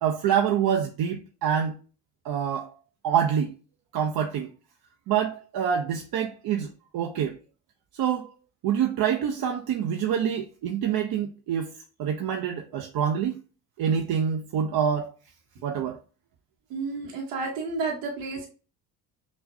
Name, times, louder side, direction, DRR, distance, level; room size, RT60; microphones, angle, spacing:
voice 1, 0.0-1.7 2.2-2.7 3.0-3.5 3.9-4.5 5.1-7.4 8.0-8.3 8.6-11.7 12.0-13.4 13.8-15.1 15.6-16.0, right 8 dB, 50° right, 0.7 m, -26 dB
voice 2, 16.7-18.5, right 4 dB, 75° right, 1.0 m, -31 dB
5.7 x 2.3 x 2.6 m
hypercardioid pair, 55°, 46 cm